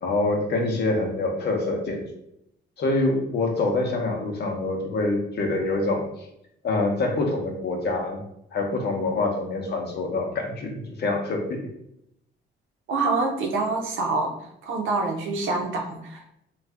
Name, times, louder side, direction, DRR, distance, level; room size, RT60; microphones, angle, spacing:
voice 1, 0.0-2.0 2.8-6.3 6.6-8.2 8.5-11.6, left 2 dB, 55° left, 2 dB, 0.8 m, -25 dB
voice 2, 12.9-14.3 14.6-16.3, right 3 dB, 80° right, 2 dB, 0.7 m, -26 dB
2.6 x 2.3 x 3.4 m, 0.77 s
cardioid pair, 90°, 20 cm